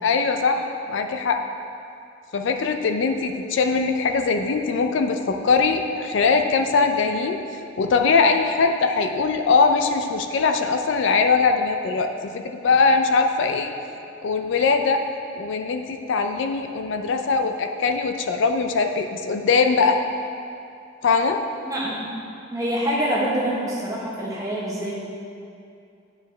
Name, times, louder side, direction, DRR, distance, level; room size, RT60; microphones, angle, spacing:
voice 1, 0.0-1.4 2.3-7.4 7.8-13.7 14.2-15.0 15.4-20.0 21.0-21.4, left 4 dB, 65° left, 6 dB, 0.4 m, -21 dB
voice 2, 21.7-22.1 22.5-24.9, right 1 dB, 15° right, -5 dB, 1.0 m, -25 dB
10.0 x 4.8 x 3.3 m, 2.5 s
head